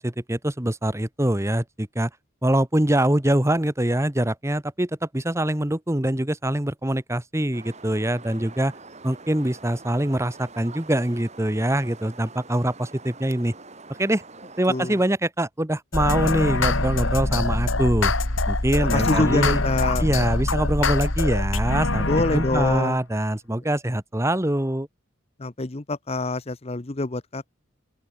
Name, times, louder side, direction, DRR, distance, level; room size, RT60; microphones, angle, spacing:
voice 1, 0.0-2.1 2.4-8.7 9.0-13.5 14.0-14.2 14.6-18.1 18.5-19.6 20.0-22.1 22.3-24.9, right 1 dB, 15° right, 1.2 m, -24 dB
sound 1, 7.5-15.1, right 3 dB, 35° right, 5.2 m, -45 dB
sound 2, 15.9-22.9, left 2 dB, 75° left, 2.8 m, -24 dB
voice 2, 18.9-20.0 22.1-23.0 25.4-27.5, left 2 dB, 30° left, 0.8 m, -26 dB
open air
head